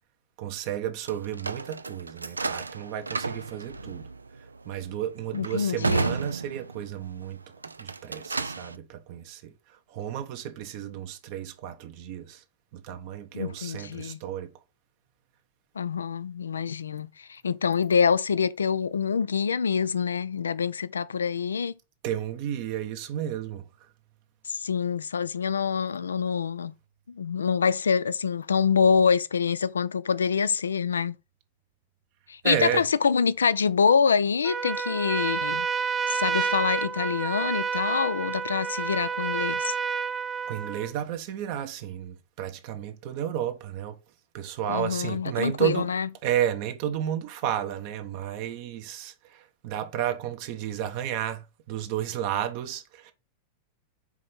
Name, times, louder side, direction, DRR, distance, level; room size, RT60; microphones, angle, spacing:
voice 1, 0.4-4.1 4.4-7.4 7.8-12.4 12.7-14.5 22.0-23.9 32.4-32.8 40.5-44.0 44.3-45.9 46.2-53.1, right 10 dB, 45° right, 0.8 m, -32 dB
sound 1, 1.0-7.1 7.5-8.8, right 4 dB, 80° right, 0.4 m, -33 dB
voice 2, 5.3-6.1 13.3-14.2 15.8-21.7 24.5-26.7 27.1-31.2 32.3-35.7 36.1-39.7 44.7-46.1, left 6 dB, 70° left, 0.4 m, -25 dB
Trumpet, 34.4-40.9, right 6 dB, 20° right, 0.5 m, -29 dB
4.8 x 4.2 x 5.5 m
figure-of-eight pair, 90°, 0 cm